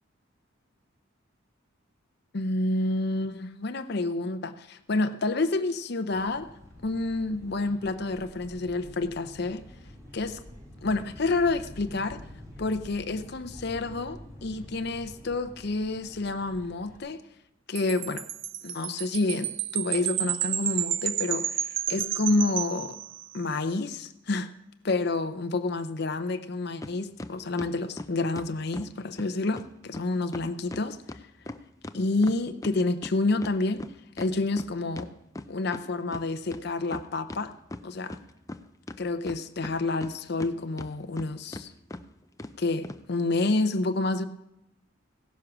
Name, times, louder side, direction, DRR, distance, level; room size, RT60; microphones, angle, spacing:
voice 1, 2.3-6.5 6.8-9.7 10.1-10.4 10.8-12.2 12.6-17.2 17.7-18.2 18.6-21.6 21.9-23.0 23.3-24.5 24.8-31.0 31.9-33.8 34.2-35.1 35.5-37.5 37.8-38.2 39.0-41.7 42.6-44.3, left 2 dB, 55° left, 8 dB, 0.7 m, -29 dB
sound 1, 6.1-17.0, left 1 dB, 15° right, 3.8 m, -47 dB
Wind chime, 17.8-23.4, right 11 dB, 70° right, 0.6 m, -31 dB
sound 2, 26.8-26.9 27.2-28.9 29.2-29.3 29.6-29.7 29.9-30.0 30.3-32.8 33.0-35.8 36.1-36.2 36.5-37.4 37.7-38.6 38.9-40.5 40.8-41.3 41.5-41.6 41.9-42.0 42.4-42.5 42.8-43.0, left 2 dB, 15° left, 0.5 m, -39 dB
16.5 x 9.9 x 6.0 m, 0.85 s
head